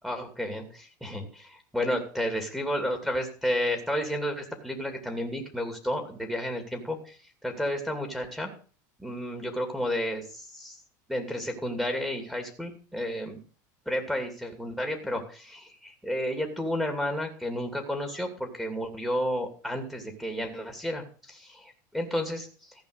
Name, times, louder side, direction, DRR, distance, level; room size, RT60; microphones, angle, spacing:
voice 1, 0.0-7.2 7.4-8.5 9.0-10.8 11.1-13.4 13.9-22.7, equal, 5° right, 3 dB, 2.6 m, -32 dB
14.5 x 5.3 x 8.1 m, 0.40 s
supercardioid pair, 120°, 10 cm